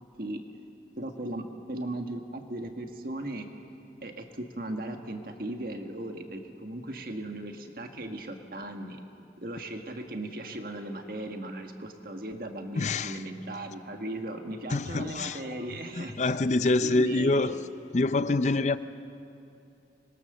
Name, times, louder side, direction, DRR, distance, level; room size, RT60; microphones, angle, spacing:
voice 1, 1.0-3.5 4.0-9.0 9.4-16.3 16.8-17.6, right 1 dB, 55° right, 1.7 m, -37 dB
voice 2, 12.8-13.2 14.7-15.6 15.9-17.6 17.9-18.8, left 2 dB, 40° left, 0.5 m, -26 dB
25.5 x 21.5 x 6.8 m
head